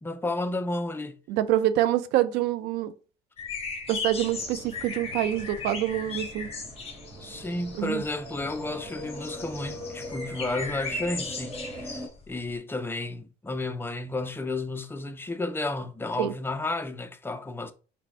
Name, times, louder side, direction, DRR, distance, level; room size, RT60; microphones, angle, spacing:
voice 1, 0.0-1.2 7.2-17.7, left 2 dB, 15° left, 0.5 m, -32 dB
voice 2, 1.3-2.9 3.9-6.5 7.8-8.0 16.2-16.3, right 13 dB, 90° right, 0.4 m, -26 dB
sound 1, 3.4-12.5, left 4 dB, 35° left, 1.1 m, -37 dB
sound 2, 4.2-12.1, equal, 15° right, 1.6 m, -42 dB
4.2 x 2.2 x 4.2 m
cardioid pair, 110°, 17 cm